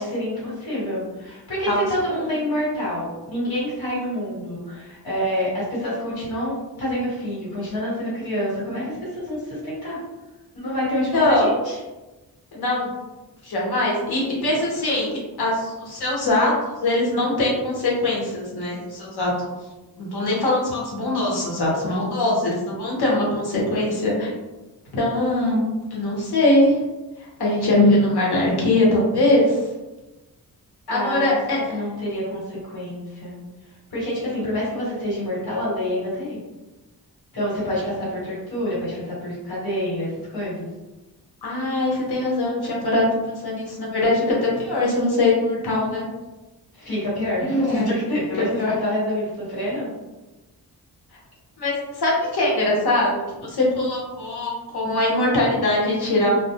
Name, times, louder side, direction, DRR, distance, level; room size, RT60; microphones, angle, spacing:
voice 1, 0.0-10.0 10.5-11.8 30.9-33.4 33.9-36.4 37.3-40.7 46.7-49.9, equal, 70° left, -7 dB, 1.3 m, -27 dB
voice 2, 11.1-11.5 12.5-12.9 13.4-19.5 20.0-24.3 24.9-25.6 25.9-26.8 27.2-29.6 30.9-31.6 41.4-46.0 47.4-47.9 48.5-48.7 51.6-56.3, left 1 dB, 85° left, -4 dB, 0.9 m, -22 dB
2.2 x 2.1 x 2.8 m, 1.1 s
wide cardioid pair, 155°, 38 cm